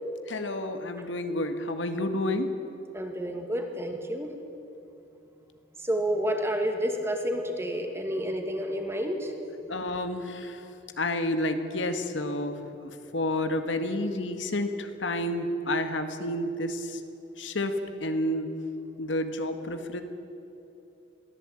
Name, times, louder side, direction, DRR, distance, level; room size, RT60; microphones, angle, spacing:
voice 1, 0.3-2.5 9.7-10.6 11.0-12.5 12.8-17.0 17.4-18.5 19.0-20.0, left 1 dB, 85° left, 7 dB, 1.9 m, -30 dB
voice 2, 2.9-4.3 5.8-9.3, equal, 15° right, 4 dB, 2.4 m, -30 dB
22.5 x 15.0 x 9.0 m, 3.0 s
head